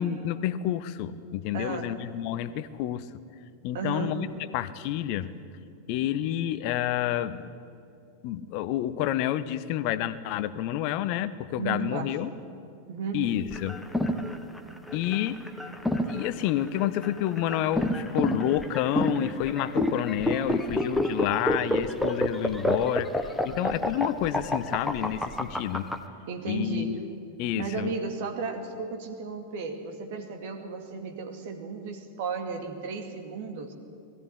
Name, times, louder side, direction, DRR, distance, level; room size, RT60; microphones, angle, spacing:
voice 1, 0.0-3.0 3.6-4.3 4.5-5.3 5.9-7.5 8.2-12.3 13.1-13.8 14.9-15.4 16.1-25.9 26.5-27.0 27.4-27.9, left 12 dB, 45° left, 15 dB, 0.8 m, -29 dB
voice 2, 1.5-1.9 3.7-4.2 11.5-12.4 12.9-13.3 26.3-27.0 27.5-33.7, right 4 dB, 50° right, 5 dB, 2.4 m, -34 dB
sound 1, 13.5-26.0, left 1 dB, ahead, 1.3 m, -28 dB
20.5 x 15.5 x 10.0 m, 2.5 s
figure-of-eight pair, 90°, 0 cm